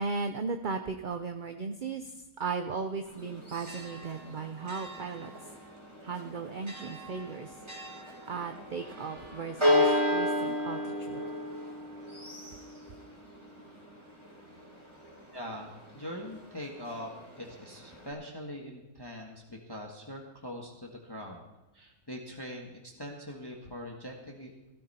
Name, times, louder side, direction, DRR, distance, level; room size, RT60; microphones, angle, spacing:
voice 1, 0.0-5.3 6.0-7.6 8.3-11.2, right 4 dB, 45° right, 7 dB, 0.7 m, -36 dB
Church bell, 3.1-18.1, left 1 dB, 20° right, 3.3 m, -34 dB
voice 2, 15.3-21.4 21.7-24.7, equal, 15° left, 0 dB, 1.6 m, -42 dB
15.5 x 13.5 x 4.3 m, 1.1 s
omnidirectional pair, 1.6 m